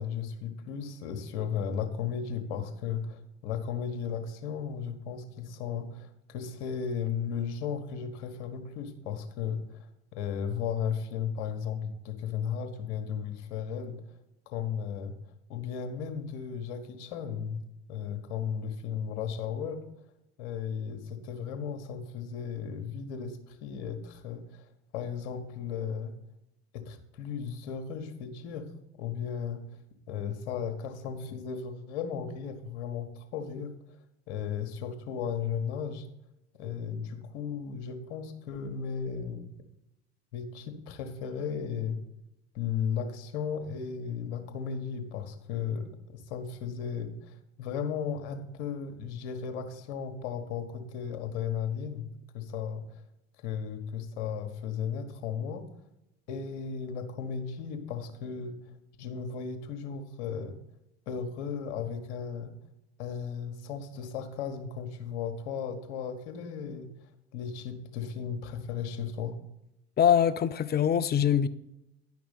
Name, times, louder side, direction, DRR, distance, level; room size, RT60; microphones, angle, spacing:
voice 1, 0.0-14.0 14.5-15.2 15.5-17.6 17.9-19.9 20.4-26.1 26.7-28.7 29.0-29.6 30.1-33.8 34.3-36.1 36.5-39.5 40.3-42.0 42.5-52.1 52.3-53.0 53.4-55.7 56.3-58.6 59.0-60.6 61.1-62.5 63.0-66.9 67.3-69.4, left 7 dB, 65° left, 6 dB, 1.5 m, -35 dB
voice 2, 70.0-71.5, left 9 dB, 30° left, 13 dB, 0.6 m, -23 dB
10.0 x 5.9 x 5.3 m, 0.87 s
hypercardioid pair, 75°, 34 cm